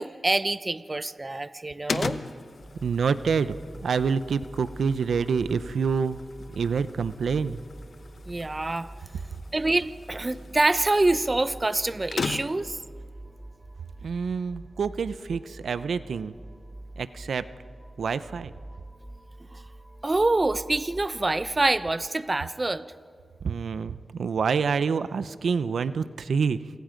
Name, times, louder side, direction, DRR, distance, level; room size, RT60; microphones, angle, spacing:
voice 1, 0.0-2.2 8.3-8.9 9.5-12.8 19.5-19.6 20.0-22.8, right 2 dB, 30° right, 14 dB, 0.7 m, -26 dB
sound 1, 1.9-12.8, left 4 dB, 65° left, 1.1 m, -38 dB
sound 2, 2.6-22.1, right 1 dB, 10° right, 1.2 m, -45 dB
voice 2, 2.8-3.5 3.8-6.2 6.6-7.6 14.0-16.3 17.0-17.5 18.0-18.5 23.4-26.7, right 5 dB, 85° right, 14 dB, 0.7 m, -27 dB
28.0 x 26.5 x 5.2 m, 2.2 s
cardioid pair, 70°, 0 cm